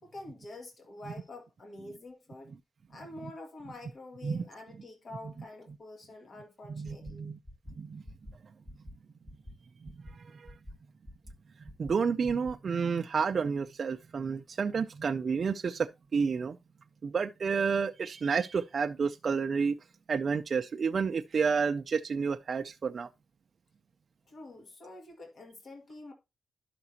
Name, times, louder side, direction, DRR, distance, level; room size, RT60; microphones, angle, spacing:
voice 1, 0.0-2.5 2.9-7.3 10.3-10.4 24.3-26.1, left 2 dB, 55° left, 2.2 m, -47 dB
voice 2, 6.7-7.4 7.8-8.0 9.8-10.5 11.8-16.6 17.0-19.8 20.1-23.1, right 5 dB, 50° right, 0.4 m, -30 dB
sound 1, 6.8-7.1 7.4-7.7 8.0-8.3 8.6-8.9 9.2-9.5 9.8-10.1 10.4-10.7 11.0-11.3 11.6-11.9 12.2-12.5, left 1 dB, 25° left, 3.8 m, -46 dB
11.5 x 5.9 x 2.8 m
wide cardioid pair, 130°, 0 cm